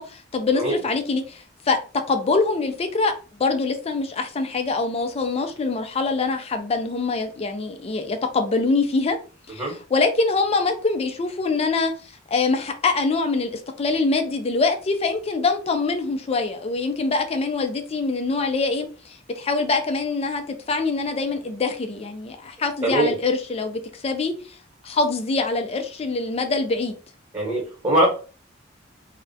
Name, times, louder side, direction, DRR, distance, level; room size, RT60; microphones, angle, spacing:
voice 1, 0.0-9.2 9.5-11.9 12.3-18.9 19.4-24.3 24.8-27.0, left 3 dB, 30° left, 0.4 m, -24 dB
voice 2, 22.8-23.2 27.3-28.1, right 1 dB, 20° right, 1.0 m, -21 dB
2.4 x 2.1 x 2.6 m
head